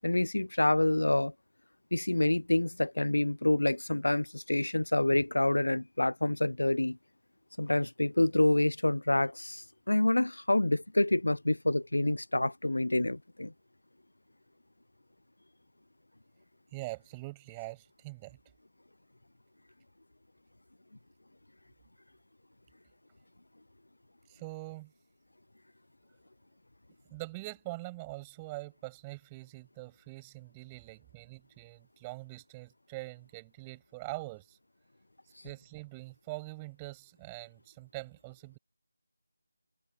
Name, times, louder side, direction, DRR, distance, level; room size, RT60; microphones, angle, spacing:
voice 1, 0.0-1.3 1.9-7.0 7.6-13.5, left 1 dB, 75° left, 0.7 m, -27 dB
voice 2, 16.7-18.4 24.3-24.9 27.1-34.6 35.4-38.6, right 23 dB, 15° right, 7.6 m, -43 dB
figure-of-eight pair, 160°, 0 cm